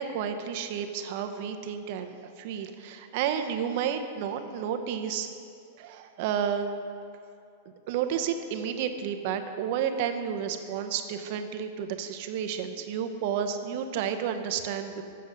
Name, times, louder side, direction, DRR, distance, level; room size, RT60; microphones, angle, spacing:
voice 1, 0.0-5.3 5.8-6.8 7.9-15.0, right 8 dB, 55° right, 7 dB, 0.7 m, -31 dB
8.5 x 6.8 x 6.3 m, 2.5 s
supercardioid pair, 145°, 0 cm